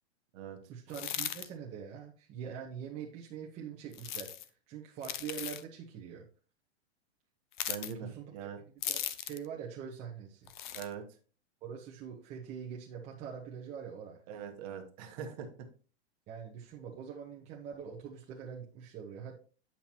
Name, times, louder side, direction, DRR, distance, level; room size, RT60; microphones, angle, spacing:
voice 1, 0.7-6.2 8.0-8.5 8.9-10.5 11.6-14.2 16.3-19.4, right 7 dB, 20° right, -3 dB, 0.8 m, -44 dB
sound 1, 0.9-1.5 3.9-4.5 5.0-5.6 7.5-7.9 8.8-9.5 10.5-10.9, left 11 dB, 45° left, 0.5 m, -37 dB
voice 2, 7.7-8.6 10.7-11.0 14.3-15.5, right 7 dB, 35° right, 5 dB, 1.2 m, -42 dB
9.0 x 5.7 x 2.9 m, 0.39 s
hypercardioid pair, 160°, 34 cm